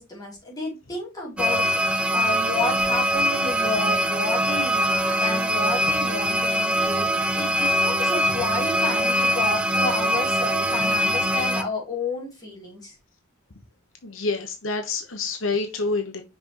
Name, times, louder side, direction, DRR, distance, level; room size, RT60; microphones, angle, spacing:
voice 1, 0.0-1.7 2.1-12.9, left 2 dB, 20° left, 3.3 m, -31 dB
sound 1, 1.4-11.6, equal, 5° right, 0.5 m, -23 dB
voice 2, 14.0-16.2, left 3 dB, 75° left, 1.1 m, -27 dB
6.0 x 5.1 x 3.0 m
head